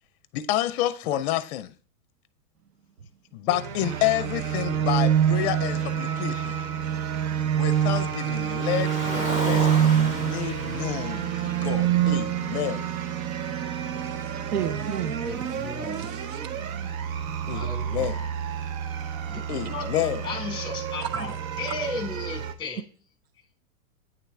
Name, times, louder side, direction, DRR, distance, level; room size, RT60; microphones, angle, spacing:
voice 1, 0.3-1.7 3.3-6.6 7.6-12.9 17.5-18.2 19.5-20.3, left 13 dB, 45° left, 0.5 m, -29 dB
sound 1, 3.5-22.5, right 9 dB, 60° right, 0.9 m, -27 dB
Car, 8.3-12.7, right 1 dB, 15° right, 1.1 m, -35 dB
voice 2, 13.5-15.2 16.0-16.5 19.5-19.7 21.0-21.3, right 9 dB, 90° right, 0.8 m, -35 dB
voice 3, 15.2-16.0 17.5-18.2 19.2-22.8, left 3 dB, 10° left, 1.2 m, -35 dB
8.8 x 3.4 x 3.2 m
hypercardioid pair, 130°, 46 cm